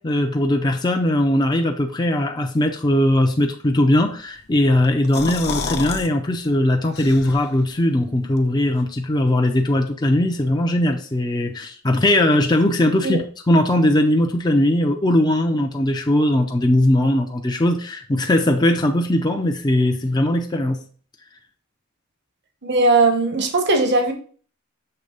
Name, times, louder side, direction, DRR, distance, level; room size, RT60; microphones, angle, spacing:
voice 1, 0.0-20.8, left 1 dB, 20° left, 3 dB, 0.5 m, -19 dB
sound 1, 4.8-6.1 6.4-6.5 6.9-7.6, left 5 dB, 50° left, 0.8 m, -29 dB
voice 2, 22.6-24.1, right 3 dB, 50° right, 6 dB, 1.0 m, -18 dB
6.7 x 3.3 x 5.1 m, 0.44 s
head